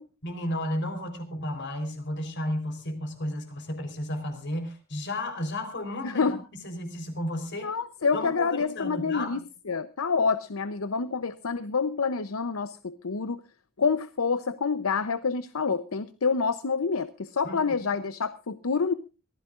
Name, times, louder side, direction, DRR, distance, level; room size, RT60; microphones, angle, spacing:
voice 1, 0.2-6.4 6.6-7.7 8.1-9.4 17.4-17.6, left 1 dB, 55° left, 7 dB, 4.0 m, -33 dB
voice 2, 6.0-6.4 7.5-9.4 9.7-13.4 13.8-18.9, left 5 dB, 75° left, 13 dB, 0.7 m, -27 dB
23.5 x 15.0 x 2.5 m, 0.31 s
head